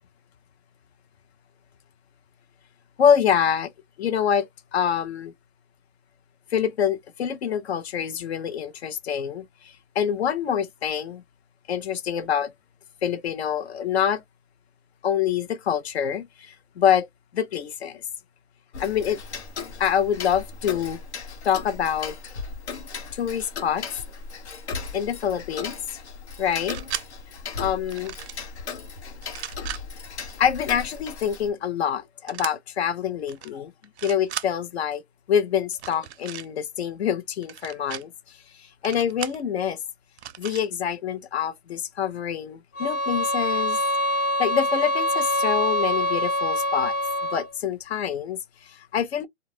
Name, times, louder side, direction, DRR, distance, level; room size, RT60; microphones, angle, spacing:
voice 1, 3.0-3.7 4.0-5.3 6.5-11.2 11.7-12.5 13.0-14.2 15.0-17.1 17.3-18.0 18.8-19.2 19.8-21.0 21.4-22.2 23.1-23.8 24.9-25.8 26.4-26.8 27.6-28.1 30.4-33.7 34.0-35.0 35.3-38.1 38.5-39.8 40.4-43.8 44.4-46.9 47.3-49.3, left 8 dB, 75° left, 0.6 m, -26 dB
Tick-tock, 18.7-31.5, left 5 dB, 90° left, 1.0 m, -37 dB
sound 1, 26.5-27.1 27.9-28.4 29.2-29.8 32.3-32.5 33.3-33.5 33.8-34.5 35.7-36.5 37.4-38.0 38.8-39.4 40.2-40.6, right 11 dB, 75° right, 0.5 m, -36 dB
sound 2, 42.8-47.5, equal, 20° left, 0.4 m, -25 dB
2.4 x 2.0 x 3.1 m
hypercardioid pair, 140°, 33 cm